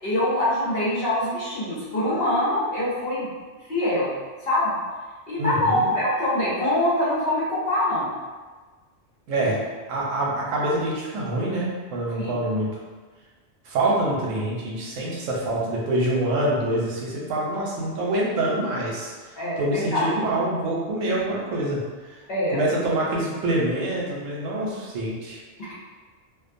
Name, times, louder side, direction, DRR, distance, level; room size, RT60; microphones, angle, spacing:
voice 1, 0.0-3.3 3.7-4.1 4.4-4.8 5.3-8.1 9.4-9.5 12.2-12.3 19.4-20.1 22.3-22.6 25.6-25.7, left 1 dB, 55° left, -8 dB, 1.0 m, -24 dB
voice 2, 5.4-5.9 9.3-9.6 9.9-12.7 13.7-19.1 19.6-21.8 22.5-25.4, right 1 dB, 85° right, -4 dB, 1.0 m, -25 dB
2.5 x 2.2 x 2.5 m, 1.4 s
omnidirectional pair, 1.3 m